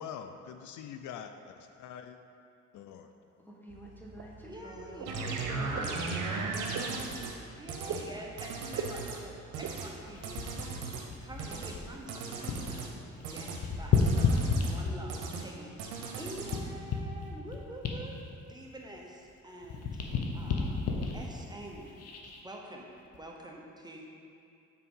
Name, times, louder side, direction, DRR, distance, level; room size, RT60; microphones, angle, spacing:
voice 1, 0.0-2.2 2.7-3.1, left 8 dB, 75° left, 7 dB, 0.5 m, -44 dB
voice 2, 3.4-6.0, equal, 5° left, -3 dB, 1.2 m, -48 dB
sound 1, 3.7-12.0, right 5 dB, 55° right, 0.5 m, -45 dB
voice 3, 4.4-5.1 7.6-12.9 13.3-13.5 13.8-15.8 16.2-18.2 18.5-20.8 21.1-22.0 22.4-22.9 23.1-24.0, right 1 dB, 15° right, -1 dB, 0.9 m, -46 dB
sound 2, 5.1-7.3 7.7-8.0 8.4-9.2 9.5-9.9 10.2-11.1 11.4-11.7 12.1-12.9 13.2-13.6 13.9-14.8 15.1-15.5 15.8-16.6, right 4 dB, 90° right, 0.8 m, -37 dB
sound 3, 10.1-12.8 13.1-15.2 15.8-19.3 19.6-22.4 23.0-23.2, left 5 dB, 55° left, 0.9 m, -32 dB
5.8 x 4.6 x 5.4 m, 2.6 s
cardioid pair, 90°, 30 cm